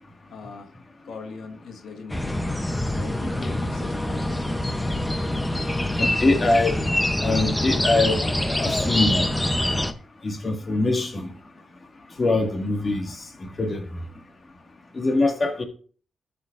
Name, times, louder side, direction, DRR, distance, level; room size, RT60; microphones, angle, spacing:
voice 1, 0.3-0.7 1.0-2.3 2.9-4.9, left 4 dB, 85° left, 1.6 m, -40 dB
sound 1, 2.1-9.9, left 1 dB, 10° left, 0.8 m, -25 dB
voice 2, 6.0-6.8 7.2-8.3 8.6-9.3 10.2-11.3 12.2-13.2 13.6-13.8 14.9-15.6, left 2 dB, 30° left, 1.9 m, -23 dB
12.5 x 7.8 x 2.5 m
wide cardioid pair, 125°, 0 cm